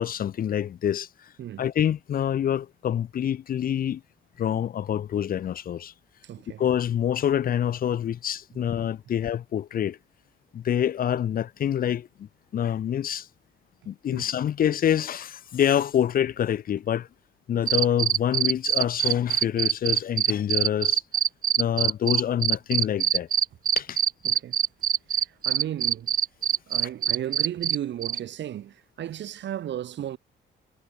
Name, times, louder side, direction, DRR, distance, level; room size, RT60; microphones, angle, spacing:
voice 1, 0.0-1.3 1.6-4.0 4.4-5.9 6.6-10.0 10.5-13.3 13.9-17.1 17.5-21.0 21.6-23.3 23.8-24.0, left 10 dB, 45° left, 0.6 m, -26 dB
voice 2, 6.2-6.6 14.1-14.2 24.2-24.6 25.2-26.1 26.7-30.2, right 11 dB, 65° right, 1.3 m, -34 dB
sound 1, 17.7-27.8 28.0-28.2, right 10 dB, 45° right, 0.5 m, -23 dB
cardioid pair, 90°, 20 cm